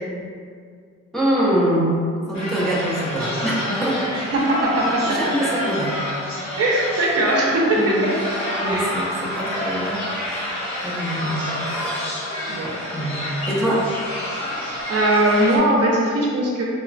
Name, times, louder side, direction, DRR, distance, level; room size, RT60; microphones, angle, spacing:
voice 1, 1.1-2.0 2.3-4.1 5.1-6.0 7.8-8.0 8.6-10.1 10.8-11.8 12.9-13.9, right 1 dB, ahead, -6 dB, 0.5 m, -24 dB
sound 1, 2.3-15.6, left 1 dB, 65° left, 1.0 m, -28 dB
voice 2, 4.1-5.3 6.6-8.0 8.6-8.9 12.5-12.8 14.6-16.6, right 1 dB, 55° right, -3 dB, 0.6 m, -20 dB
3.0 x 2.1 x 2.4 m, 2.1 s
cardioid pair, 90°, 30 cm